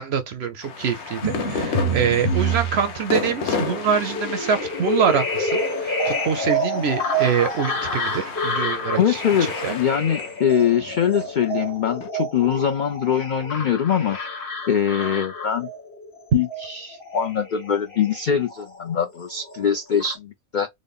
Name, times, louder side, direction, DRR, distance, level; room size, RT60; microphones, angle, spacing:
voice 1, 0.0-9.2 9.6-9.8, right 7 dB, 65° right, 0.7 m, -24 dB
sound 1, 0.6-12.1, left 5 dB, 60° left, 0.9 m, -33 dB
sound 2, 1.2-19.0 19.3-20.2, equal, 40° left, 1.3 m, -28 dB
voice 2, 9.0-14.2 14.7-15.7 16.3-20.7, left 8 dB, 85° left, 0.4 m, -23 dB
3.8 x 2.1 x 3.4 m
omnidirectional pair, 1.5 m